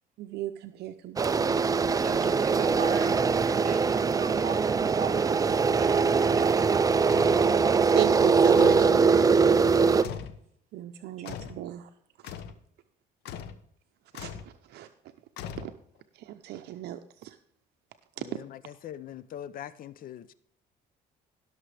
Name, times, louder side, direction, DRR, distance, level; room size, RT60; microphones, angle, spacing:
voice 1, 0.2-2.0 7.9-9.3 10.7-11.9 12.2-12.3 14.1-14.9 15.5-15.7 16.1-17.4 18.2-18.3, right 12 dB, 75° right, 0.7 m, -36 dB
sound 1, 1.2-10.0, right 5 dB, 20° right, 0.4 m, -22 dB
voice 2, 2.0-5.4 5.7-7.2 9.9-10.3, right 6 dB, 45° right, 3.6 m, -40 dB
sound 2, 7.1-7.4 8.6-9.0 10.0-10.4 11.3-11.6 12.2-12.6 13.3-13.6 14.1-14.5 15.4-16.0, left 8 dB, 85° left, 1.0 m, -40 dB
voice 3, 18.2-20.3, left 10 dB, 55° left, 0.7 m, -42 dB
17.0 x 6.6 x 3.4 m
cardioid pair, 110°, 17 cm